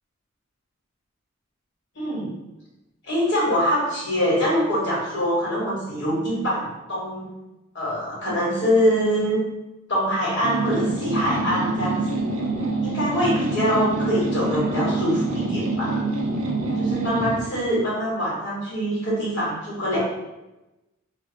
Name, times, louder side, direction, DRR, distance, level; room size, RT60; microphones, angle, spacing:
voice 1, 1.9-2.3 3.0-7.3 7.7-9.4 9.9-12.2 12.8-16.0 16.8-20.0, equal, 60° left, -5 dB, 1.1 m, -24 dB
sound 1, 10.4-17.5, right 3 dB, 65° right, 0.5 m, -26 dB
2.5 x 2.1 x 3.8 m, 1.0 s
head